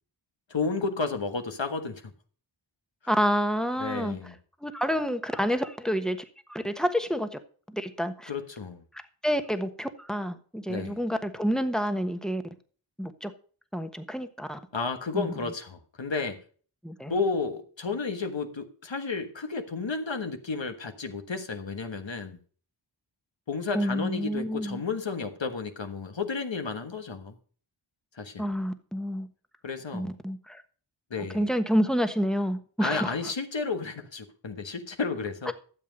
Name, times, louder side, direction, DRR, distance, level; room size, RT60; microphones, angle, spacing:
voice 1, 0.5-2.0 3.8-4.3 8.3-8.8 10.7-11.0 14.7-16.4 17.1-22.4 23.5-27.3 28.2-28.5 29.6-30.2 31.1-31.5 32.8-35.5, left 4 dB, 65° left, 7 dB, 1.5 m, -32 dB
voice 2, 3.1-4.3 4.6-6.2 6.5-7.4 7.7-8.3 9.2-12.4 13.0-13.3 13.7-14.6 15.1-15.3 16.8-17.2 23.7-24.8 28.4-29.3 29.9-30.6 31.3-33.1 35.5-35.6, equal, ahead, 9 dB, 1.2 m, -28 dB
12.0 x 7.5 x 5.2 m, 0.43 s
wide cardioid pair, 55°, 47 cm